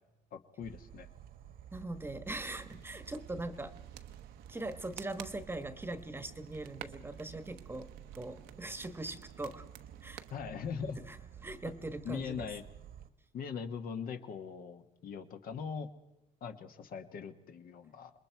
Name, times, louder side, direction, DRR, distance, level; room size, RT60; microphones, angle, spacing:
voice 1, 0.3-1.1 10.3-11.0 12.0-12.6 13.3-15.9 16.4-18.1, left 6 dB, 60° left, 7 dB, 1.4 m, -41 dB
sound 1, 0.6-13.1, right 9 dB, 60° right, 1.3 m, -52 dB
voice 2, 1.7-3.7 4.5-9.7 10.0-10.2 11.1-11.2 11.4-12.5, right 2 dB, 15° right, 11 dB, 1.2 m, -41 dB
sound 2, 2.4-10.4, right 12 dB, 85° right, 1.0 m, -53 dB
27.0 x 21.0 x 4.6 m, 0.98 s
cardioid pair, 110°, 17 cm